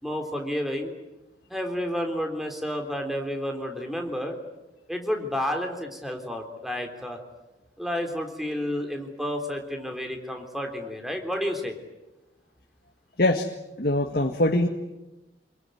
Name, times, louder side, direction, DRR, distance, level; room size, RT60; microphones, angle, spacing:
voice 1, 0.0-0.9 1.5-4.4 4.9-7.2 7.8-11.8, equal, ahead, 3 dB, 3.5 m, -30 dB
voice 2, 13.8-14.7, left 1 dB, 55° left, 4 dB, 1.7 m, -22 dB
27.5 x 22.5 x 9.3 m, 1.0 s
head